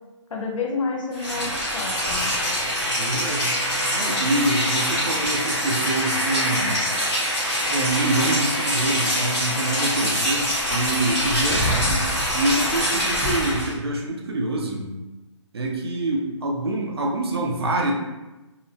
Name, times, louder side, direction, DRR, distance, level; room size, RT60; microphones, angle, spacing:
voice 1, 0.3-2.3 10.0-10.2, left 4 dB, 85° left, -1 dB, 0.8 m, -29 dB
Rain, 1.1-13.7, equal, 10° left, 0.7 m, -24 dB
voice 2, 3.0-3.5 3.9-6.8 7.7-14.9 15.5-17.9, right 2 dB, 55° right, 0 dB, 0.5 m, -26 dB
2.7 x 2.0 x 2.7 m, 1.1 s
hypercardioid pair, 170°, 16 cm